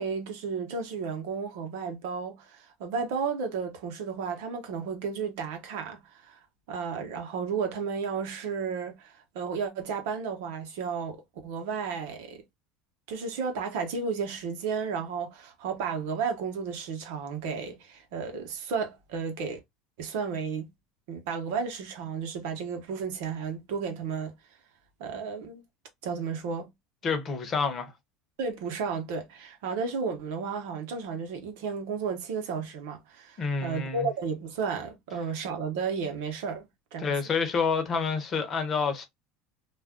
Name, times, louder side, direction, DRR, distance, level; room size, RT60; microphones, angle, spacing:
voice 1, 0.0-6.4 6.7-12.4 13.1-19.6 20.0-20.7 21.1-24.3 25.0-25.6 26.0-26.7 28.4-37.1, right 5 dB, 80° right, 0.9 m, -33 dB
voice 2, 27.0-27.9 33.4-34.1 37.0-39.1, left 5 dB, 35° left, 0.9 m, -28 dB
2.5 x 2.2 x 3.6 m
supercardioid pair, 115°, 0 cm